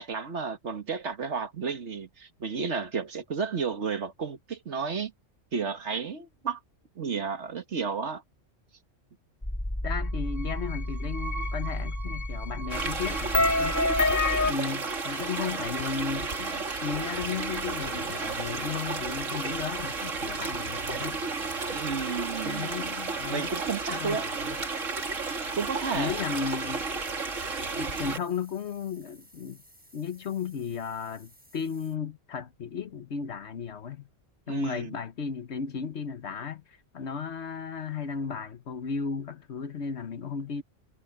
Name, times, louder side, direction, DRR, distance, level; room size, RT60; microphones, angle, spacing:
voice 1, 0.0-5.1 5.5-6.6 7.0-8.2 21.7-22.7 23.3-24.3 25.6-26.1 34.5-34.9, right 5 dB, 65° right, 1.7 m, -32 dB
sound 1, 9.4-14.5, left 2 dB, 15° left, 2.3 m, -28 dB
voice 2, 9.8-13.8 14.4-21.2 22.4-23.5 23.9-24.6 25.9-26.8 27.8-29.6 29.9-34.1 34.5-40.6, left 6 dB, 65° left, 1.3 m, -35 dB
sound 2, 12.7-28.2, right 4 dB, 80° right, 2.7 m, -32 dB
sound 3, 27.9-32.0, equal, 5° right, 5.9 m, -57 dB
omnidirectional pair, 1.3 m